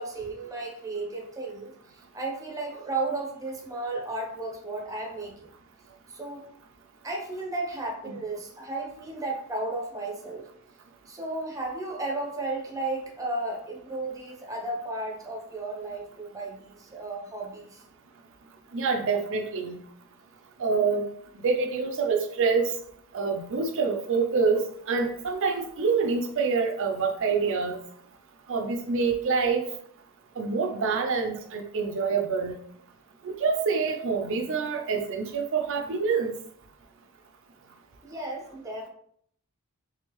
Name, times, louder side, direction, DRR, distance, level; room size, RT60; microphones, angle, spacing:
voice 1, 0.0-1.7 2.1-5.5 6.1-6.5 7.0-10.5 11.1-17.8 38.0-38.9, right 2 dB, 15° right, 0 dB, 0.7 m, -34 dB
voice 2, 18.7-19.8 20.6-21.0 21.4-22.7 23.1-27.8 28.5-29.6 30.4-32.6 33.2-36.3, right 5 dB, 60° right, 3 dB, 0.5 m, -26 dB
3.5 x 3.3 x 3.0 m, 0.65 s
head